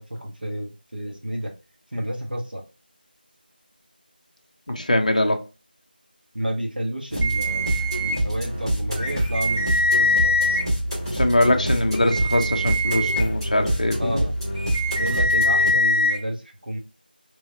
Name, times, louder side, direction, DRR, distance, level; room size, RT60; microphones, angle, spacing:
voice 1, 0.0-1.5 1.9-2.6 6.3-10.6 14.0-14.3 14.9-16.8, right 1 dB, 65° right, 1.0 m, -31 dB
voice 2, 4.7-5.4 11.1-14.3, left 1 dB, 45° left, 0.5 m, -22 dB
sound 1, 7.1-15.7, right 1 dB, 25° right, 1.5 m, -26 dB
sound 2, 7.2-8.2 9.0-10.6 11.9-13.2 14.5-16.2, left 2 dB, 20° left, 0.9 m, -23 dB
3.1 x 2.8 x 2.5 m
figure-of-eight pair, 175°, 5 cm